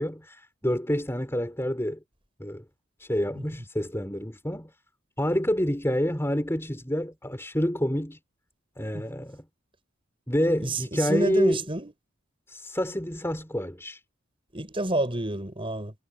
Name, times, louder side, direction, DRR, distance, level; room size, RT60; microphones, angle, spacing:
voice 1, 0.0-2.0 2.4-2.6 3.0-4.7 5.2-8.2 8.8-9.4 10.3-11.6 12.5-14.0, equal, 15° left, 3.5 m, -28 dB
voice 2, 10.6-11.9 14.5-15.9, right 1 dB, 25° right, 6.1 m, -29 dB
head